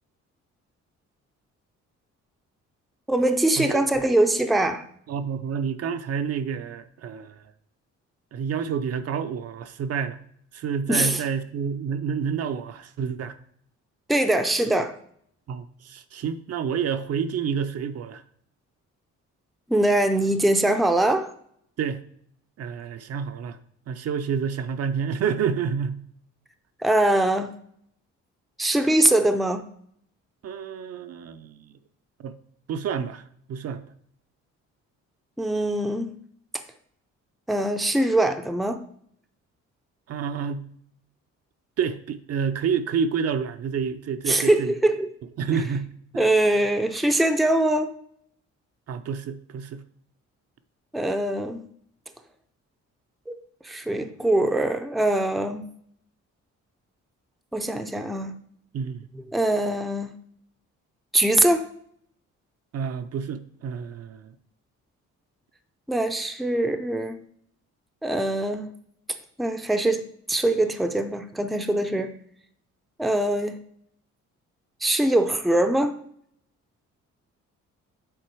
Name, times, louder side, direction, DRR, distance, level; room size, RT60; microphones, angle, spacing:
voice 1, 3.1-4.8 10.9-11.2 14.1-14.9 19.7-21.3 26.8-27.5 28.6-29.7 35.4-36.2 37.5-38.8 44.3-45.1 46.2-47.9 50.9-51.7 53.3-55.6 57.5-58.4 59.3-60.1 61.1-61.7 65.9-67.2 68.0-68.7 69.4-72.1 73.0-73.6 74.8-76.0, right 1 dB, ahead, 0.5 m, -22 dB
voice 2, 5.1-7.4 8.3-10.2 10.5-13.3 15.5-18.2 21.8-22.0 22.6-23.6 23.9-26.0 30.4-31.7 32.2-32.3 32.7-33.2 33.5-33.8 40.1-40.7 41.8-44.7 45.4-46.3 48.9-49.8 58.7-59.1 62.7-64.3, right 6 dB, 55° right, 0.6 m, -29 dB
7.8 x 3.9 x 4.6 m
cardioid pair, 90°, 30 cm